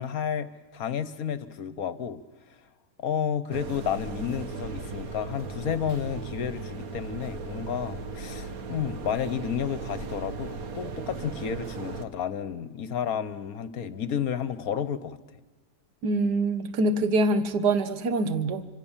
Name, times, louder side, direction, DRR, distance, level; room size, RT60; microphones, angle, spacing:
voice 1, 0.0-2.2 3.0-15.2, left 8 dB, 60° left, 14 dB, 1.5 m, -31 dB
sound 1, 3.5-12.0, right 4 dB, 60° right, 1.8 m, -37 dB
voice 2, 16.0-18.7, right 2 dB, 75° right, 11 dB, 1.8 m, -25 dB
27.0 x 25.5 x 7.4 m, 1.3 s
omnidirectional pair, 1.8 m